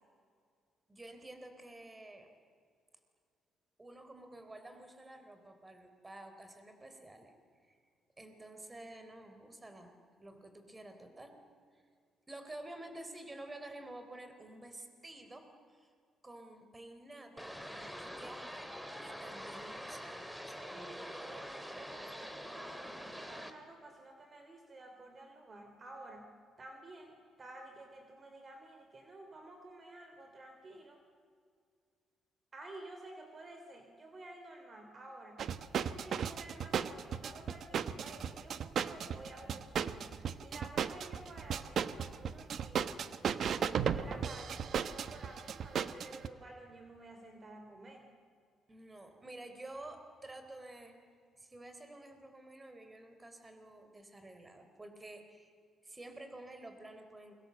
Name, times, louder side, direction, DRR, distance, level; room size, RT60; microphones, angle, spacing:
voice 1, 0.9-2.3 3.8-7.3 7.6-7.8 8.2-9.9 10.2-11.4 11.7-11.8 12.3-15.9 16.2-18.7 19.0-20.9 48.7-51.0 51.4-55.5 55.8-57.3, right 1 dB, 20° right, 7 dB, 3.9 m, -50 dB
sound 1, 17.4-23.5, equal, 5° right, 2.6 m, -45 dB
voice 2, 20.6-26.3 26.6-31.0 32.5-35.5 35.8-42.9 43.7-48.1, right 2 dB, 35° right, 4 dB, 3.1 m, -52 dB
sound 2, 35.4-46.3, right 8 dB, 65° right, 1.1 m, -35 dB
28.5 x 23.5 x 7.9 m, 2.2 s
cardioid pair, 90°, 0 cm